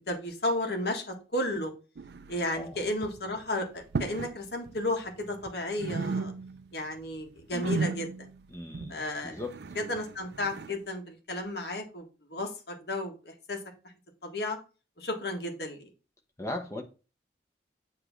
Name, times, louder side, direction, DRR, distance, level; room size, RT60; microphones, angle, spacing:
voice 1, 0.0-1.7 2.3-6.3 6.7-8.3 8.9-9.4 9.8-12.0 12.3-13.6 14.2-14.6 15.0-15.9, left 1 dB, 65° left, 1.7 m, -33 dB
sound 1, 2.0-2.7 2.9-3.3 3.8-4.4 4.7-5.5 5.8-6.7 7.0-10.8, right 4 dB, 70° right, 0.4 m, -35 dB
voice 2, 8.5-9.6 16.4-16.8, left 2 dB, 15° left, 1.1 m, -38 dB
7.8 x 3.2 x 6.0 m
head